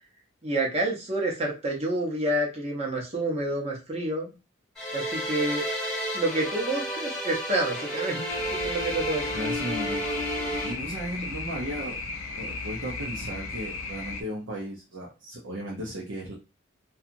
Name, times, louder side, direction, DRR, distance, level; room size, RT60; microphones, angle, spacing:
voice 1, 0.4-4.3 4.9-5.6 6.1-8.2 8.6-9.2, right 1 dB, 30° right, -1 dB, 0.8 m, -28 dB
sound 1, 4.8-10.7, equal, ahead, 0.8 m, -31 dB
sound 2, 8.3-14.2, left 3 dB, 80° left, 0.5 m, -35 dB
voice 2, 9.3-10.1 10.6-12.0 12.4-16.3, equal, 70° right, -3 dB, 0.6 m, -35 dB
2.8 x 2.3 x 2.5 m, 0.29 s
head